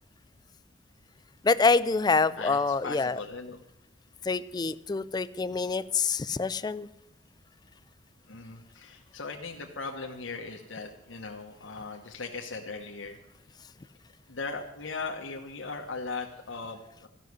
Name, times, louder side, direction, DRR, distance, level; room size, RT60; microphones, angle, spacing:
voice 1, 1.4-3.2 4.3-6.9, left 4 dB, 20° left, 15 dB, 0.4 m, -26 dB
voice 2, 2.4-3.6 8.3-13.2 14.3-17.1, left 4 dB, 85° left, 1 dB, 1.1 m, -38 dB
14.0 x 6.3 x 9.4 m, 0.88 s
head